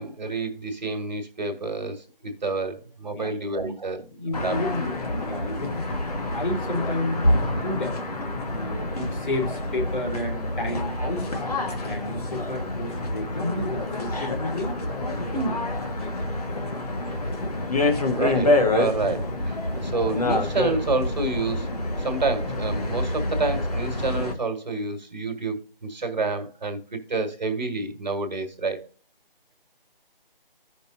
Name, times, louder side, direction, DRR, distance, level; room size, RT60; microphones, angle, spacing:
voice 1, 0.0-4.0 4.3-4.6 18.1-21.7 22.0-28.8, right 3 dB, 50° right, 1.7 m, -29 dB
voice 2, 3.1-3.8 4.1-8.0 8.5-11.4 11.8-14.8 15.3-15.6 16.0-16.4, left 1 dB, 55° left, 3.0 m, -32 dB
sound 1, 4.3-24.3, left 2 dB, 40° left, 1.3 m, -27 dB
15.5 x 5.3 x 2.5 m
figure-of-eight pair, 170°, 29 cm